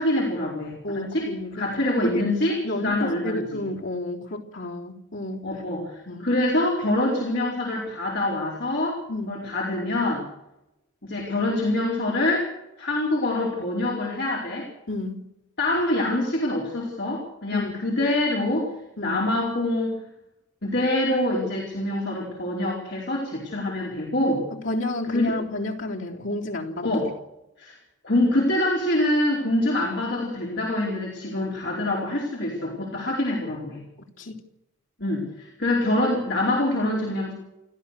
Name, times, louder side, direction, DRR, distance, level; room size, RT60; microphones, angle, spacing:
voice 1, 0.0-1.3 1.5-3.6 5.4-9.0 9.3-10.2 11.0-12.5 12.8-14.7 15.6-18.8 19.0-20.0 20.6-24.4 25.1-25.3 26.8-27.1 27.6-27.8 28.0-33.8 35.0-37.3, left 1 dB, 60° left, -2 dB, 4.7 m, -25 dB
voice 2, 0.8-1.7 2.0-2.2 2.6-5.5 6.1-6.3 9.1-9.3 14.9-15.2 17.5-17.7 19.0-19.2 24.6-26.9 34.2-34.3, left 2 dB, 75° left, 0 dB, 3.7 m, -30 dB
29.0 x 13.5 x 6.7 m, 0.88 s
head